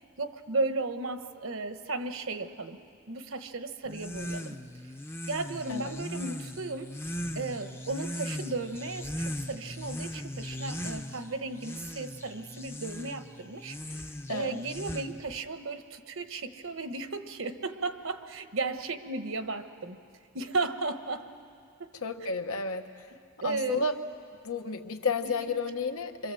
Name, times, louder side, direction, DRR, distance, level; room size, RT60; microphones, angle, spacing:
voice 1, 0.2-2.8 3.1-4.6 5.3-6.9 7.3-14.0 14.3-20.0 20.3-21.3 21.8-21.9 23.4-23.8 25.2-25.5, right 3 dB, 60° right, 9 dB, 1.1 m, -35 dB
sound 1, 3.9-15.4, equal, 10° left, 0.7 m, -39 dB
voice 2, 22.0-22.9 23.4-23.9 24.4-26.3, left 3 dB, 80° left, 5 dB, 1.3 m, -31 dB
27.5 x 25.0 x 7.7 m, 2.3 s
head